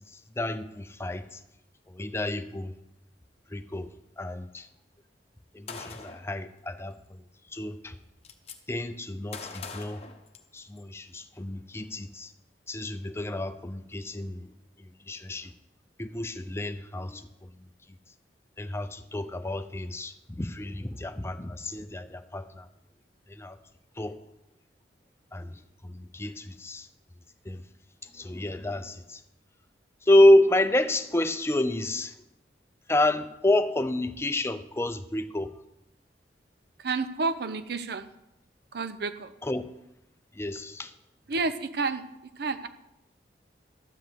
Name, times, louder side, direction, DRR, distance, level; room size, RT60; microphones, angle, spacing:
voice 1, 0.4-1.4 1.9-2.7 3.5-3.9 4.2-4.7 5.5-7.0 7.5-7.9 8.7-10.0 10.5-12.3 12.7-14.5 15.1-15.5 16.0-17.5 18.6-22.7 23.3-23.6 24.0-24.2 25.3-25.5 25.8-26.9 27.5-27.6 28.1-29.2 30.1-32.1 32.9-35.5 39.5-39.6 40.4-40.9, left 1 dB, 15° left, 10 dB, 0.5 m, -28 dB
Gunshot gunfire, 5.7-6.3 7.5-7.6 7.9-8.6 9.3-10.8, left 5 dB, 35° left, 0.9 m, -42 dB
voice 2, 36.8-38.1 38.7-39.3 41.3-42.7, right 3 dB, 60° right, 11 dB, 0.7 m, -30 dB
12.0 x 5.1 x 7.7 m, 0.88 s
head